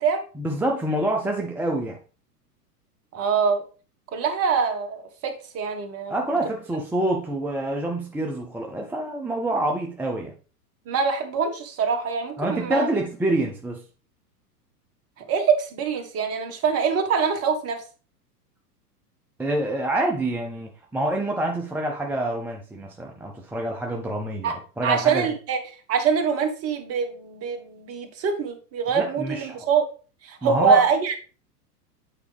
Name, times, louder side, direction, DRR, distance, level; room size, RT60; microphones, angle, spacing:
voice 1, 0.3-2.0 6.1-10.3 12.4-13.8 19.4-25.3 28.9-29.7 30.4-30.9, right 1 dB, 5° right, 0.6 m, -26 dB
voice 2, 3.1-3.6 4.1-6.2 10.8-12.9 15.3-17.8 24.4-24.6 24.8-25.6 25.9-29.9 30.2-31.2, right 6 dB, 30° right, 1.5 m, -24 dB
8.6 x 4.8 x 3.4 m
hypercardioid pair, 110°, 49 cm